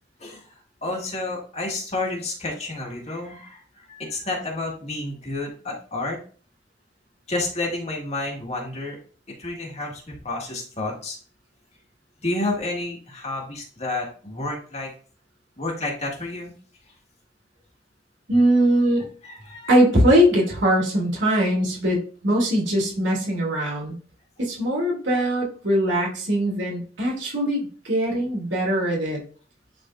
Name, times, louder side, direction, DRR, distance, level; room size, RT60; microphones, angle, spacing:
voice 1, 0.8-6.2 7.3-9.0 9.4-11.2 12.2-14.9 15.6-16.5 19.2-19.7, left 2 dB, 35° left, -1 dB, 1.9 m, -30 dB
voice 2, 18.3-19.0 19.7-23.9 24.4-29.2, equal, 80° right, -3 dB, 2.6 m, -21 dB
10.5 x 3.8 x 2.5 m, 0.42 s
head